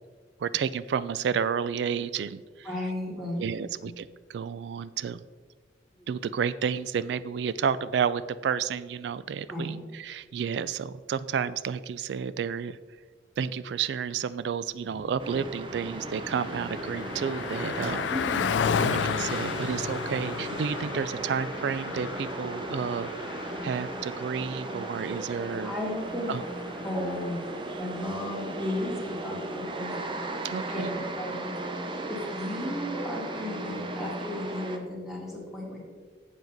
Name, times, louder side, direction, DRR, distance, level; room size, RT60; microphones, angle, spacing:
voice 1, 0.4-2.7 3.4-5.2 6.1-12.8 13.4-18.1 18.8-23.1 23.6-25.7 26.3-26.4 30.4-31.0, right 7 dB, 70° right, 16 dB, 0.3 m, -31 dB
voice 2, 2.6-3.5 3.8-3.9 6.0-6.1 9.5-9.8 18.1-18.5 25.6-26.4 26.8-27.4 27.7-29.9 30.7-31.6 32.1-35.8, left 1 dB, ahead, -5 dB, 1.8 m, -34 dB
sound 1, 14.8-27.3 27.6-27.8 28.3-28.4 28.7-28.9 29.8-29.9, equal, 50° right, 1.8 m, -49 dB
sound 2, 15.2-34.8, right 2 dB, 25° right, 0.6 m, -36 dB
Car passing by, 15.6-27.3, left 7 dB, 85° left, 0.3 m, -34 dB
7.5 x 7.1 x 4.0 m, 1.5 s
head